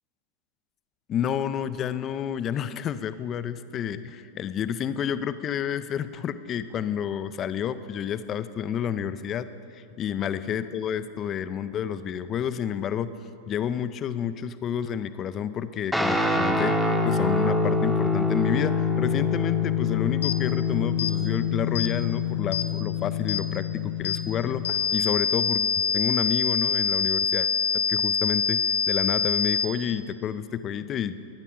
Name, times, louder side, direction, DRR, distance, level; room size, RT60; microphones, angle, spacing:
voice 1, 1.1-13.1 13.5-25.7 25.9-31.3, left 9 dB, 30° left, 13 dB, 0.4 m, -30 dB
Guitar, 15.9-24.7, left 4 dB, 5° right, 0.9 m, -25 dB
sound 1, 20.2-20.4 21.0-21.1 21.7-21.9 22.5-22.7 23.3-23.4 24.0-24.2 24.6-29.6, left 6 dB, 65° left, 0.8 m, -25 dB
20.5 x 9.9 x 3.7 m, 2.6 s
figure-of-eight pair, 90°, 0 cm